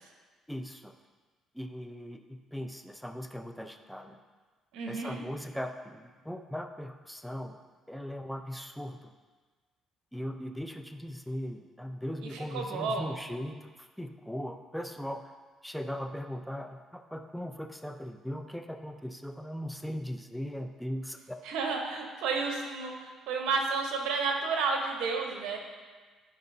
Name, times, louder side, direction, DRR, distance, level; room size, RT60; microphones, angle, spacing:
voice 1, 0.5-0.9 1.5-4.2 4.9-7.6 7.9-9.1 10.1-15.2 15.6-21.4, equal, ahead, 6 dB, 0.5 m, -39 dB
voice 2, 4.7-5.2 12.3-13.1 21.4-25.6, right 4 dB, 80° right, 2 dB, 1.0 m, -31 dB
9.7 x 4.8 x 2.7 m, 1.4 s
cardioid pair, 85°, 0 cm